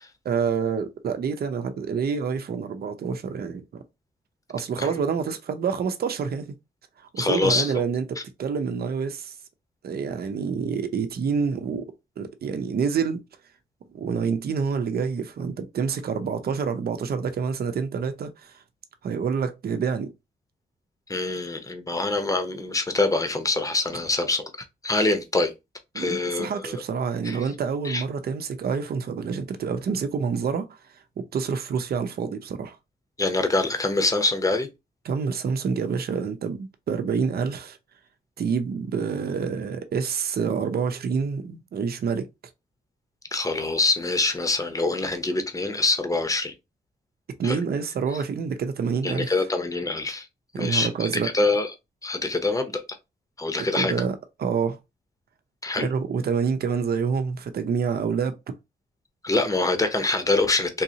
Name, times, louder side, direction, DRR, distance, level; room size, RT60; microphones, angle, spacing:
voice 1, 0.2-3.8 4.5-6.5 7.1-9.3 9.8-11.9 12.2-13.2 13.9-18.5 19.0-20.1 25.9-30.7 31.2-32.8 35.0-37.8 38.4-42.3 47.4-49.3 50.5-51.3 53.7-54.8 55.8-58.4, right 6 dB, 65° right, 0.6 m, -27 dB
voice 2, 7.2-7.7 21.1-24.5 24.8-25.5 25.9-26.7 27.2-27.4 27.8-28.0 33.2-34.7 43.3-46.5 47.4-47.6 49.0-50.3 50.6-51.7 52.0-52.8 53.4-53.9 55.6-55.9 59.2-60.8, left 2 dB, 20° left, 0.8 m, -25 dB
3.8 x 2.7 x 2.8 m
cardioid pair, 80°, 17 cm